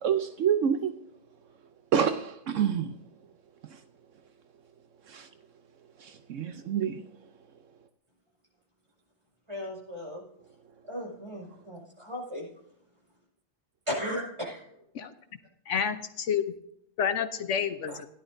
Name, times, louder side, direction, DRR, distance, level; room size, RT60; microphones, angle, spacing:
voice 1, 0.0-0.9 1.9-3.0 3.7-3.8 5.1-5.3 6.0-7.0 17.9-18.0, right 8 dB, 75° right, 8 dB, 1.0 m, -28 dB
voice 2, 9.5-10.2 10.9-12.5 13.9-14.7, equal, 20° right, -2 dB, 5.3 m, -36 dB
voice 3, 15.7-16.4 17.0-18.1, left 7 dB, 70° left, 10 dB, 1.0 m, -29 dB
16.0 x 11.0 x 2.6 m, 0.74 s
omnidirectional pair, 1.3 m